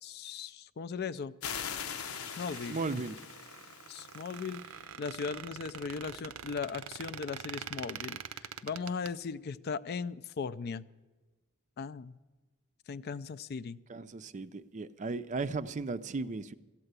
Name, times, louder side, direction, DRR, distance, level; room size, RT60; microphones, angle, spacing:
voice 1, 0.0-1.3 2.4-2.8 3.9-4.7 5.0-10.8 11.8-12.2 12.9-13.8, left 5 dB, 50° left, 0.4 m, -38 dB
sound 1, 1.4-4.7, left 7 dB, 90° left, 0.9 m, -41 dB
Squeak, 1.9-9.1, right 8 dB, 80° right, 0.6 m, -45 dB
voice 2, 2.7-3.1 13.9-16.5, right 3 dB, 35° right, 0.4 m, -36 dB
13.5 x 8.8 x 8.0 m
head